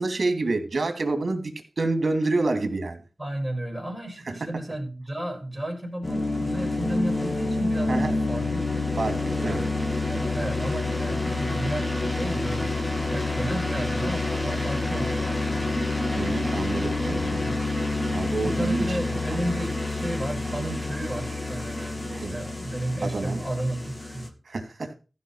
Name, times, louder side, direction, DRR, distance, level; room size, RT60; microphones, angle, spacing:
voice 1, 0.0-3.0 4.3-4.4 7.9-8.2 9.0-9.7 16.2-17.4 18.1-19.0 22.1-22.3 23.0-23.4 24.5-25.0, right 3 dB, 65° right, 2.9 m, -28 dB
voice 2, 3.2-8.9 9.4-9.7 10.1-12.8 13.1-15.6 17.4-17.6 18.4-24.3, right 1 dB, 5° right, 5.3 m, -33 dB
sound 1, 6.0-24.3, left 2 dB, 25° left, 2.5 m, -28 dB
15.0 x 5.8 x 5.7 m
wide cardioid pair, 75°, 0 cm